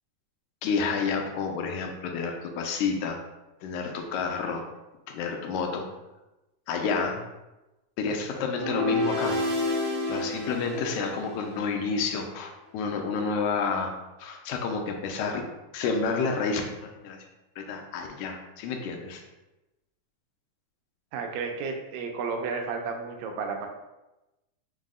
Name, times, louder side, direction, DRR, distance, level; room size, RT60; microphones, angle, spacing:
voice 1, 0.6-3.2 3.6-4.6 5.1-5.9 6.7-7.2 8.0-9.4 10.1-13.9 14.2-15.4 15.7-17.2 17.6-19.2, left 5 dB, 85° left, 3 dB, 1.9 m, -29 dB
sound 1, 8.5-11.7, left 2 dB, 60° right, 0.8 m, -29 dB
voice 2, 21.1-23.7, right 5 dB, 90° right, 3 dB, 2.0 m, -32 dB
5.3 x 2.0 x 3.6 m, 1.0 s
omnidirectional pair, 3.3 m